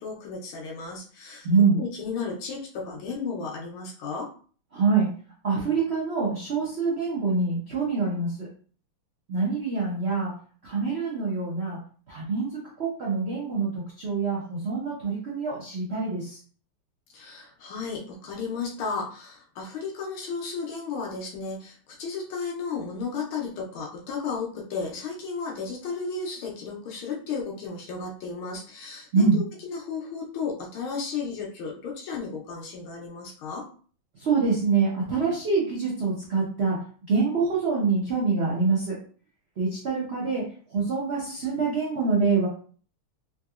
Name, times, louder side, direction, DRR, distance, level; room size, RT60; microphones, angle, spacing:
voice 1, 0.0-1.5 1.7-4.3 17.1-33.7, left 5 dB, 80° left, -1 dB, 1.6 m, -34 dB
voice 2, 1.4-1.8 4.7-5.1 5.4-8.5 9.3-10.3 10.6-11.8 12.1-12.5 12.8-16.4 29.1-29.4 34.2-36.8 37.1-38.9 39.6-40.4 40.7-42.5, right 4 dB, 75° right, -5 dB, 0.5 m, -25 dB
3.8 x 2.7 x 2.4 m, 0.43 s
omnidirectional pair, 2.3 m